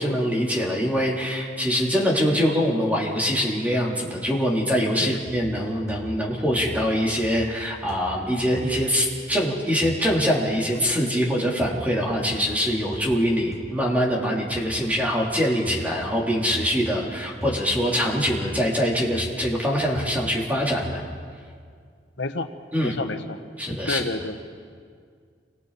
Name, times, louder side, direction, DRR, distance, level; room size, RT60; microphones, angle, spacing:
voice 1, 0.0-21.0 22.7-23.0 23.6-24.0, equal, 10° right, -3 dB, 3.4 m, -24 dB
sound 1, 5.2-5.6 5.9-6.3 6.6-7.0 7.2-7.6 7.9-8.2 8.5-8.8 9.8-10.0 10.7-10.8 11.6-11.8 12.3-12.5 12.9-13.1 13.5-13.6 14.5-14.7 15.7-15.9 16.5-16.8 17.4-17.7 18.2-18.5 19.1-19.4 19.9-20.2 20.8-21.1, equal, 20° left, 3.2 m, -37 dB
voice 2, 22.2-22.5 22.8-23.4 23.9-24.4, left 2 dB, 90° left, 7 dB, 1.3 m, -29 dB
29.0 x 24.5 x 4.2 m, 2.1 s
head